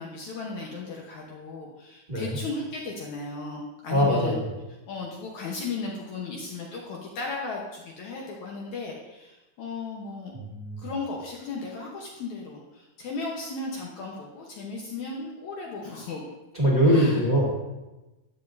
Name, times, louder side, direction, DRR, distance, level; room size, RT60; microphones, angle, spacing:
voice 1, 0.0-4.4 4.9-10.4 10.8-16.2 16.9-17.2, left 3 dB, 75° left, -2 dB, 1.7 m, -36 dB
voice 2, 3.9-4.4 10.3-10.9 16.5-17.5, equal, 15° right, -5 dB, 1.3 m, -22 dB
13.0 x 9.2 x 2.7 m, 1.1 s
omnidirectional pair, 4.8 m